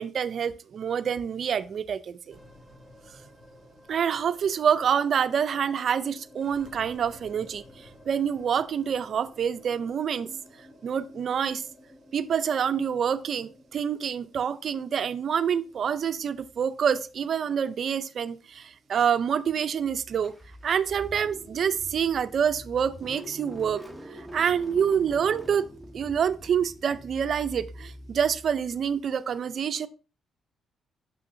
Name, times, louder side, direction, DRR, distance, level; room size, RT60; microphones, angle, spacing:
voice 1, 0.0-2.4 3.9-10.3 10.8-11.6 12.1-20.3 20.6-23.8 24.1-25.6 25.9-29.9, right 7 dB, 55° right, 12 dB, 0.4 m, -27 dB
sound 1, 2.3-20.8, left 1 dB, 30° left, 1.9 m, -53 dB
Car / Engine starting, 20.2-29.0, equal, ahead, 0.8 m, -44 dB
6.2 x 5.8 x 2.6 m, 0.34 s
cardioid pair, 90°, 0 cm